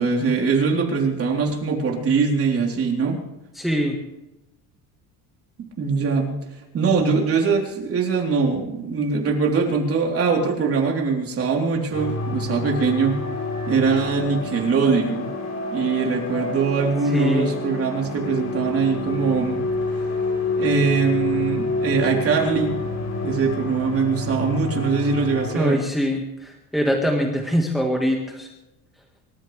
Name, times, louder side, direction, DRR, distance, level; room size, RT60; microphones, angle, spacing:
voice 1, 0.0-3.2 5.8-6.4 6.7-13.2 13.7-15.3 15.7-19.6 20.6-22.8 23.2-25.8, right 5 dB, 35° right, 0 dB, 3.7 m, -22 dB
voice 2, 3.6-4.0 17.1-17.5 25.5-28.5, equal, ahead, 1 dB, 1.7 m, -23 dB
sound 1, 11.9-25.6, left 3 dB, 40° left, 3.6 m, -28 dB
26.0 x 14.0 x 3.4 m, 0.94 s
cardioid pair, 145°, 40 cm